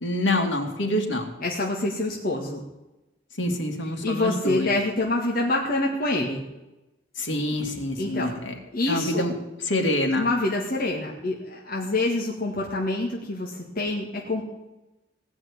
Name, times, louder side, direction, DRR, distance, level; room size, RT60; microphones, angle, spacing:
voice 1, 0.0-1.3 3.4-4.7 7.2-8.5 8.9-9.3 9.7-10.3, left 1 dB, 85° left, 3 dB, 2.5 m, -26 dB
voice 2, 1.4-2.6 4.0-6.4 8.0-8.3 8.7-9.3 10.2-14.4, left 2 dB, 50° left, -2 dB, 2.0 m, -26 dB
17.5 x 6.2 x 9.7 m, 0.99 s
head